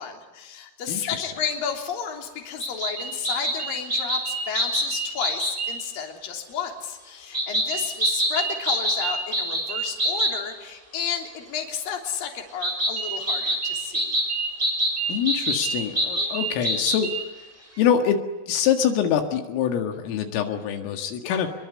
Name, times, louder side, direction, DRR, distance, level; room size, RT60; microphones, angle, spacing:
voice 1, 0.0-14.2 16.1-16.4 21.2-21.4, left 7 dB, 50° left, 3 dB, 4.6 m, -32 dB
voice 2, 0.9-1.3 15.1-17.1 17.8-18.2 18.5-21.5, left 8 dB, 85° left, 5 dB, 4.5 m, -24 dB
sound 1, 2.6-5.8 7.3-10.4 12.6-17.3, right 1 dB, 10° right, 5.5 m, -26 dB
26.0 x 23.0 x 9.7 m, 1.1 s
omnidirectional pair, 5.8 m